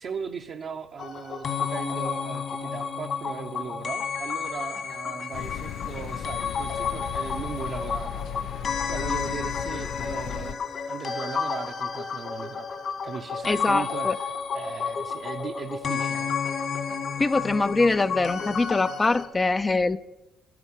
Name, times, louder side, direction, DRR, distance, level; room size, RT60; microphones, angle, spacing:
voice 1, 0.0-8.3 8.9-12.7 13.0-16.3, right 6 dB, 60° right, 3 dB, 0.8 m, -38 dB
sound 1, 1.0-19.3, left 6 dB, 60° left, 1.9 m, -31 dB
sound 2, 5.3-10.5, left 9 dB, 75° left, 0.5 m, -36 dB
voice 2, 13.4-14.2 17.2-20.0, left 3 dB, 25° left, 10 dB, 0.5 m, -23 dB
12.5 x 11.0 x 6.4 m, 0.94 s
cardioid pair, 90°, 0 cm